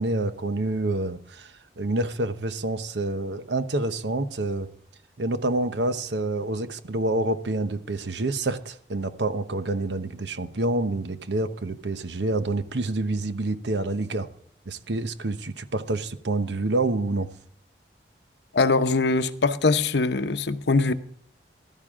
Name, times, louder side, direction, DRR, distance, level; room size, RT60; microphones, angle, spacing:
voice 1, 0.0-4.7 5.2-14.3 14.7-17.3, right 2 dB, 85° right, 1.0 m, -27 dB
voice 2, 18.5-20.9, left 3 dB, 75° left, 0.8 m, -22 dB
15.0 x 13.0 x 3.7 m
head